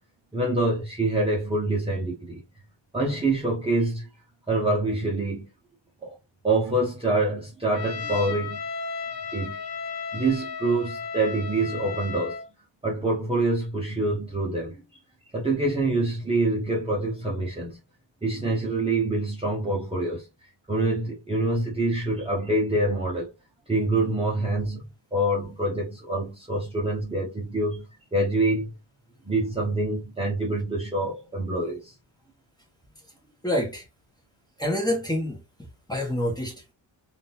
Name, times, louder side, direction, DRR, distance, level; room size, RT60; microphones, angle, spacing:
voice 1, 0.3-2.4 2.9-4.1 4.5-5.5 6.0-6.2 6.4-8.6 9.3-12.4 12.8-14.8 15.3-17.8 18.2-20.3 20.7-23.3 23.7-28.8 29.2-31.9, right 2 dB, 10° right, 1.0 m, -26 dB
Trumpet, 7.7-12.5, left 5 dB, 50° left, 1.0 m, -34 dB
voice 2, 33.4-33.9 34.6-36.7, left 1 dB, 10° left, 1.4 m, -28 dB
3.9 x 2.7 x 2.6 m
cardioid pair, 115°, 49 cm